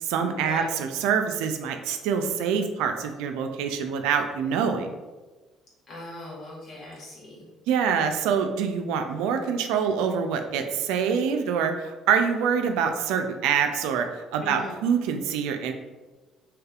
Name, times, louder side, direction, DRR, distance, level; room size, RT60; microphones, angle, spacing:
voice 1, 0.0-4.9 7.7-14.1 14.3-15.7, right 7 dB, 80° right, 6 dB, 0.3 m, -25 dB
voice 2, 5.9-7.4 14.4-14.7, left 2 dB, 50° left, -5 dB, 1.3 m, -39 dB
3.3 x 2.9 x 2.4 m, 1.2 s
supercardioid pair, 65°, 0 cm